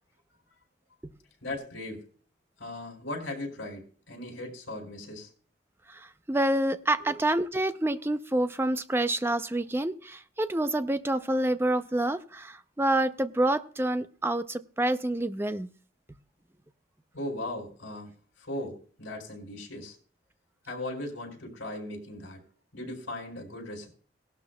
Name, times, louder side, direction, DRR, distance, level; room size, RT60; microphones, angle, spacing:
voice 1, 1.4-2.0 2.6-5.3 7.1-7.2 17.1-18.1 18.4-20.0 20.7-22.4 22.7-23.9, left 1 dB, 70° left, 0 dB, 4.2 m, -38 dB
voice 2, 5.9-15.7, right 1 dB, 10° right, 11 dB, 0.4 m, -27 dB
18.0 x 12.0 x 2.2 m, 0.42 s
head